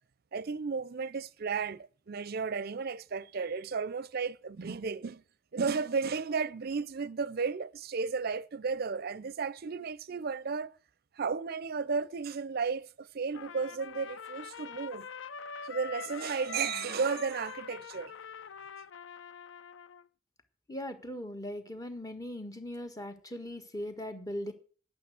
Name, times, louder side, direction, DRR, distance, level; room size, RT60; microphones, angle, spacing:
voice 1, 0.3-5.2 5.5-10.7 11.2-15.1 15.6-18.1, right 5 dB, 50° right, 0.5 m, -34 dB
Trumpet, 13.3-20.1, left 7 dB, 75° left, 0.5 m, -44 dB
voice 2, 20.7-24.5, left 1 dB, 20° left, 1.5 m, -39 dB
10.0 x 8.6 x 7.6 m
head